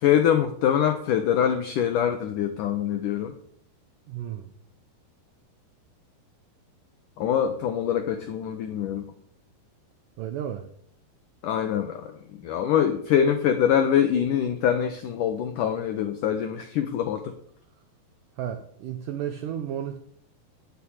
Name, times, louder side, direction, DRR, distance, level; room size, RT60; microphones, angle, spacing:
voice 1, 0.0-3.3 7.2-9.1 11.4-12.1 12.4-17.3, left 9 dB, 90° left, 8 dB, 1.8 m, -24 dB
voice 2, 4.1-4.5 10.2-10.7 18.4-20.0, right 10 dB, 80° right, 8 dB, 1.9 m, -33 dB
9.8 x 9.2 x 8.6 m, 0.66 s
omnidirectional pair, 5.0 m